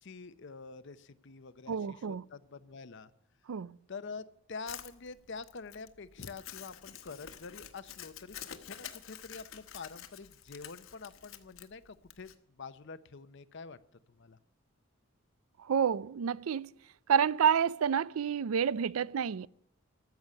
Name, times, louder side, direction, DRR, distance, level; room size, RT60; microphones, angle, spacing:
voice 1, 0.0-3.1 3.9-12.3 12.6-13.8 14.1-14.4, left 4 dB, 60° left, 0.7 m, -46 dB
voice 2, 1.7-2.2 3.5-3.8 15.6-16.7 17.1-19.5, right 7 dB, 90° right, 0.4 m, -29 dB
Crumpling crinkling, 4.7-12.3, left 10 dB, 75° left, 1.3 m, -48 dB
14.0 x 7.1 x 9.4 m
head